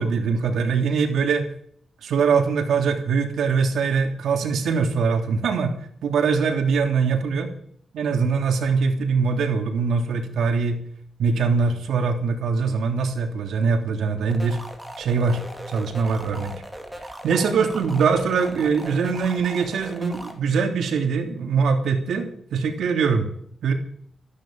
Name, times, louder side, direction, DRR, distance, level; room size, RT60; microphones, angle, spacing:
voice 1, 0.0-1.5 2.0-5.7 6.0-7.5 7.9-10.8 11.2-14.6 15.0-15.4 15.7-16.5 17.2-23.3 23.6-23.7, right 5 dB, 85° right, 4 dB, 3.2 m, -22 dB
sound 1, 14.3-20.3, right 1 dB, 5° right, 2.8 m, -39 dB
14.5 x 12.0 x 7.9 m, 0.63 s
wide cardioid pair, 165°, 0 cm